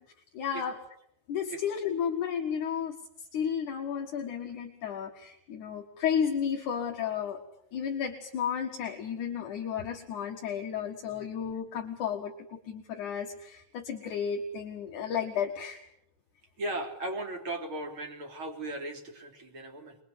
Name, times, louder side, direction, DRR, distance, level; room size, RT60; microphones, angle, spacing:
voice 1, 0.3-0.8 1.3-7.4 7.7-15.9, left 7 dB, 55° left, 1 dB, 2.5 m, -33 dB
voice 2, 16.6-20.0, right 1 dB, 30° right, 3 dB, 3.5 m, -37 dB
24.0 x 22.5 x 8.1 m, 0.72 s
omnidirectional pair, 5.3 m